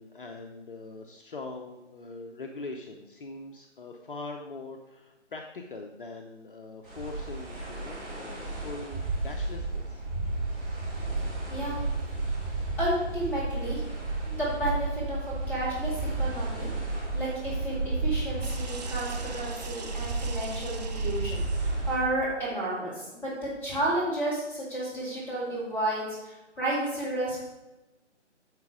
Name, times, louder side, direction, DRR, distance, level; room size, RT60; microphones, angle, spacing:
voice 1, 0.0-10.0, left 3 dB, 45° left, 3 dB, 0.8 m, -42 dB
sound 1, 6.8-22.0, right 2 dB, 15° right, 3.3 m, -32 dB
voice 2, 12.8-13.8 14.2-15.2 15.5-16.7 17.1-27.5, right 1 dB, 5° left, -8 dB, 2.4 m, -32 dB
sound 2, 18.4-21.9 24.9-25.8, right 5 dB, 35° right, 0.8 m, -45 dB
9.4 x 5.9 x 4.8 m, 1.1 s
figure-of-eight pair, 150°, 36 cm